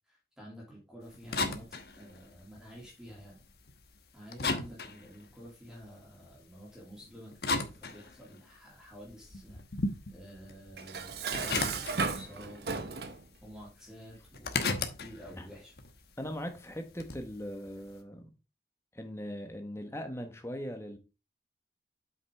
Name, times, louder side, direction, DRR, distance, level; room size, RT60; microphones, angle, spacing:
voice 1, 0.1-3.4 4.1-13.0 13.4-15.7, equal, 5° right, 2.6 m, -50 dB
sound 1, 1.0-4.0 4.3-6.3 6.9-8.6 8.9-12.5 12.8-13.6 13.9-17.3, left 3 dB, 60° left, 1.1 m, -36 dB
Dishes pots and pans, 10.8-13.2, right 4 dB, 65° right, 0.9 m, -35 dB
voice 2, 16.2-18.3 18.9-21.0, equal, 15° left, 1.1 m, -40 dB
8.0 x 5.8 x 3.4 m
head